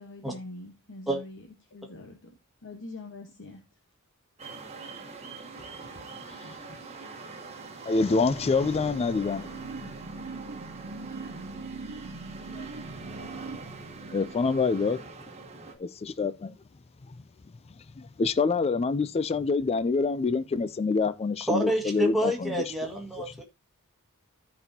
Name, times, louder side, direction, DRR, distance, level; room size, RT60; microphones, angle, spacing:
voice 1, 0.0-2.3 2.6-3.6, left 2 dB, 60° left, 1.1 m, -44 dB
sound 1, 4.4-15.7, right 4 dB, 30° right, 1.3 m, -44 dB
voice 2, 7.9-9.5 12.5-12.7 14.1-15.0 15.8-16.5 18.0-22.5, left 4 dB, 25° left, 0.3 m, -26 dB
sound 2, 7.9-14.7, right 4 dB, 60° right, 0.7 m, -41 dB
voice 3, 21.5-23.4, equal, ahead, 1.8 m, -28 dB
13.5 x 5.3 x 2.7 m
head